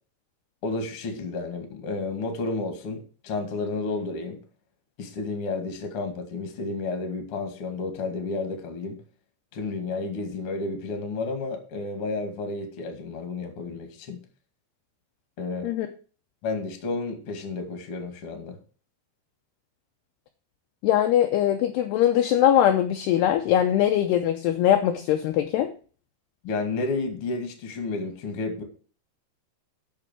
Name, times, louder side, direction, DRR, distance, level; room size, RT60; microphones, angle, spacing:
voice 1, 0.6-4.4 5.0-9.0 9.5-14.2 15.4-15.7 16.4-18.6 26.4-28.6, left 3 dB, 40° left, 6 dB, 2.1 m, -31 dB
voice 2, 20.8-25.7, left 11 dB, 80° left, 5 dB, 2.4 m, -21 dB
8.8 x 6.6 x 7.6 m, 0.40 s
omnidirectional pair, 5.8 m